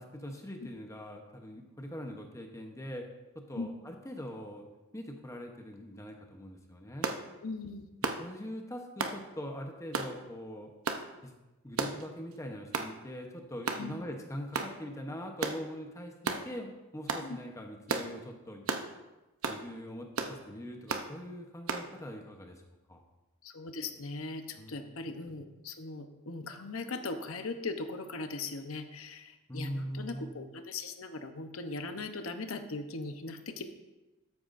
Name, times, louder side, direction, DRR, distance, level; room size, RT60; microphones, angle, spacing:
voice 1, 0.0-3.1 3.3-4.7 4.9-7.1 8.2-10.7 11.2-11.3 11.6-18.7 19.5-22.6 22.9-23.0 24.6-24.9 29.5-30.3, equal, 15° left, 3 dB, 0.9 m, -42 dB
sound 1, 7.0-7.2 8.0-8.2 9.0-9.2 9.9-10.1 10.9-11.0 11.8-12.0 12.7-12.9 13.7-13.9 14.5-14.7 15.4-15.6 16.2-16.4 17.1-17.3 17.9-18.1 18.7-18.9 19.4-19.6 20.2-20.4 20.9-21.1 21.7-21.9, right 4 dB, 75° right, 0.8 m, -33 dB
voice 2, 7.4-7.9 13.8-13.9 17.2-17.4 23.4-33.6, left 3 dB, 70° left, 7 dB, 0.9 m, -39 dB
13.0 x 9.4 x 2.6 m, 1.1 s
head